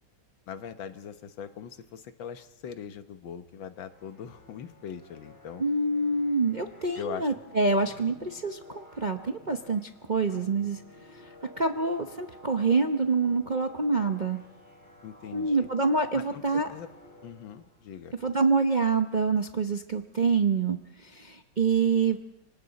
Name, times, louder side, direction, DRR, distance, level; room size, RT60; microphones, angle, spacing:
voice 1, 0.5-5.6 7.0-7.3 15.0-15.7 16.1-16.9 17.2-18.1, left 8 dB, 85° left, 9 dB, 1.8 m, -41 dB
sound 1, 3.9-18.0, left 1 dB, 10° left, 2.6 m, -52 dB
voice 2, 5.6-10.8 11.1-14.4 15.3-16.7 18.2-22.2, right 4 dB, 40° right, 4 dB, 0.6 m, -26 dB
27.5 x 25.5 x 4.1 m, 0.85 s
omnidirectional pair, 2.1 m